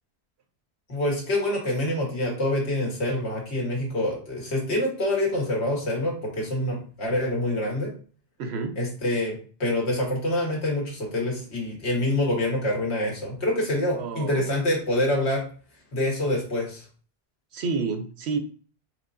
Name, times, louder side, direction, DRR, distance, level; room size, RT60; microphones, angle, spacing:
voice 1, 0.9-7.9 8.8-15.4 15.9-16.8, left 1 dB, 85° left, -2 dB, 1.8 m, -26 dB
voice 2, 8.4-8.8 14.0-14.5 17.5-18.4, right 4 dB, 80° right, 7 dB, 1.0 m, -29 dB
4.6 x 3.6 x 2.6 m, 0.40 s
omnidirectional pair, 1.1 m